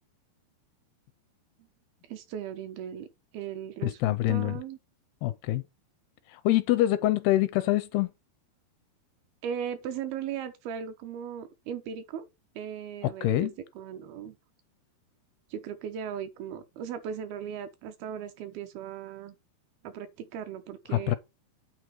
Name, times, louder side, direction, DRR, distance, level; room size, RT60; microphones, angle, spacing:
voice 1, 2.1-3.1 3.3-4.8 9.4-12.2 12.6-14.4 15.5-19.4 19.8-21.2, right 8 dB, 75° right, 2.5 m, -37 dB
voice 2, 3.8-4.6 5.2-5.6 6.3-8.1 13.0-13.5 20.9-21.2, left 15 dB, 80° left, 2.4 m, -25 dB
9.1 x 3.3 x 6.5 m
omnidirectional pair, 4.9 m